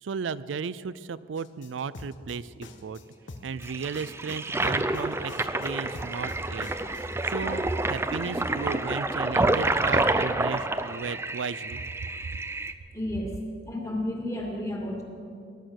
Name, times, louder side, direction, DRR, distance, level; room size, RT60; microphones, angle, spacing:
voice 1, 0.0-3.0 3.4-12.1, right 5 dB, 85° right, 17 dB, 0.4 m, -35 dB
sound 1, 1.4-7.1, left 2 dB, 80° left, 1.2 m, -45 dB
Toilet flush, 3.6-12.7, right 2 dB, 15° right, 0.5 m, -28 dB
voice 2, 12.9-13.4 13.7-15.0, left 1 dB, 15° left, -1 dB, 2.7 m, -31 dB
19.5 x 11.5 x 6.5 m, 2.4 s
head